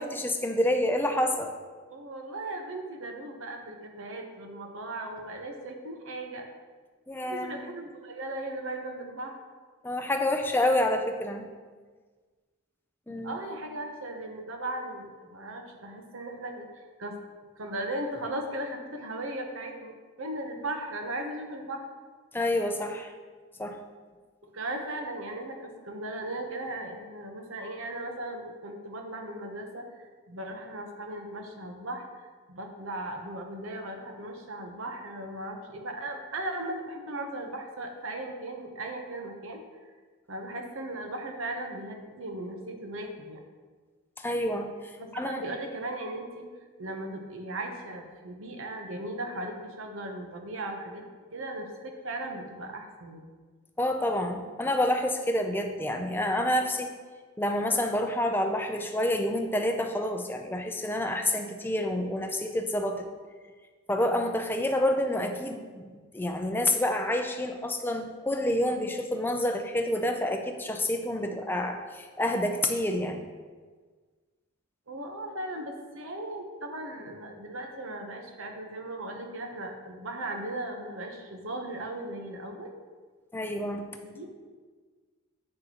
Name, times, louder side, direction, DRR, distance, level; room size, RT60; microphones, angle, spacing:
voice 1, 0.0-1.5 7.1-7.6 9.8-11.5 13.1-13.4 22.3-23.1 23.6-23.8 44.2-45.4 53.8-56.9 57.4-63.0 63.9-65.9 66.1-73.2 83.3-83.9, left 1 dB, 10° left, 4 dB, 0.5 m, -28 dB
voice 2, 1.9-6.5 7.1-9.4 13.2-17.2 17.6-21.9 24.4-39.9 40.3-43.4 45.0-46.4 46.8-51.0 51.3-53.3 74.9-82.7 84.1-84.3, right 1 dB, 65° right, 3 dB, 1.0 m, -37 dB
8.7 x 6.5 x 3.0 m, 1.5 s
head